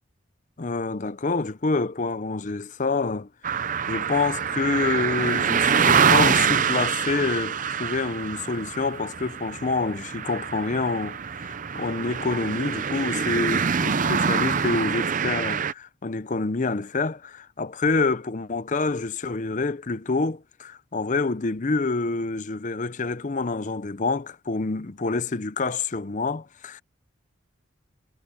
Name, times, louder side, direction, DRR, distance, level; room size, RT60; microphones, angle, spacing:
voice 1, 0.6-3.3 3.9-26.8, left 3 dB, 40° left, 0.6 m, -27 dB
sound 1, 3.4-15.7, right 6 dB, 40° right, 0.6 m, -25 dB
head